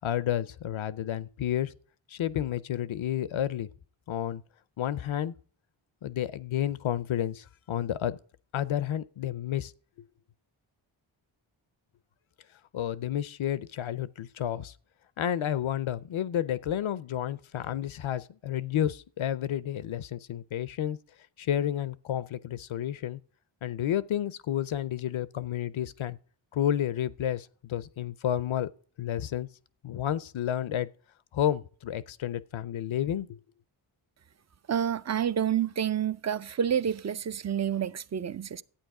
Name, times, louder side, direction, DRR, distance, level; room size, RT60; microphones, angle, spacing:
voice 1, 0.0-1.7 2.1-3.7 4.1-4.4 4.8-5.3 6.0-8.2 8.5-9.7 10.0-10.1 12.7-14.7 15.2-21.0 21.4-23.2 23.6-26.2 26.5-28.7 29.0-29.5 29.8-30.9 31.3-33.4, left 11 dB, 70° left, 0.6 m, -31 dB
voice 2, 34.7-38.6, right 9 dB, 35° right, 0.5 m, -29 dB
12.0 x 8.7 x 4.8 m
cardioid pair, 65°, 49 cm